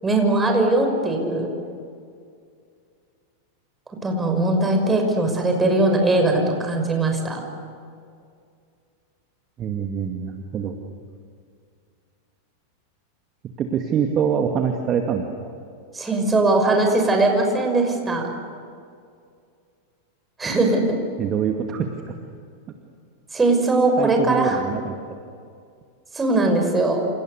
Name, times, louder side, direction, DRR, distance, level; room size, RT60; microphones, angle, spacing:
voice 1, 0.0-1.5 4.0-7.4 15.9-18.3 20.4-21.0 23.3-24.6 26.1-27.0, right 2 dB, 15° right, 3 dB, 6.1 m, -20 dB
voice 2, 9.6-10.8 13.6-15.5 21.2-21.9 24.0-24.9, right 7 dB, 30° right, 4 dB, 2.3 m, -24 dB
29.0 x 28.5 x 6.8 m, 2.3 s
figure-of-eight pair, 90°, 0 cm